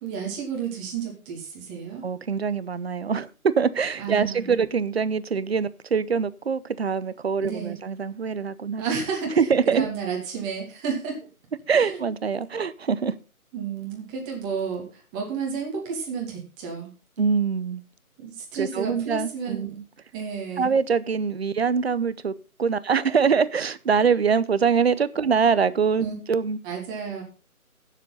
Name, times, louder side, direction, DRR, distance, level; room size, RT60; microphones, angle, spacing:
voice 1, 0.0-2.0 4.0-4.6 7.4-7.8 8.8-11.3 11.7-12.1 13.5-16.9 18.2-19.8 20.1-20.7 26.0-26.2 26.6-27.2, right 6 dB, 15° right, 0 dB, 2.5 m, -31 dB
voice 2, 2.0-8.8 9.4-9.9 11.7-13.1 17.2-17.8 18.6-19.8 20.6-22.3 22.6-26.6, right 6 dB, 45° right, 16 dB, 0.8 m, -24 dB
16.0 x 7.5 x 4.1 m, 0.33 s
figure-of-eight pair, 155°, 44 cm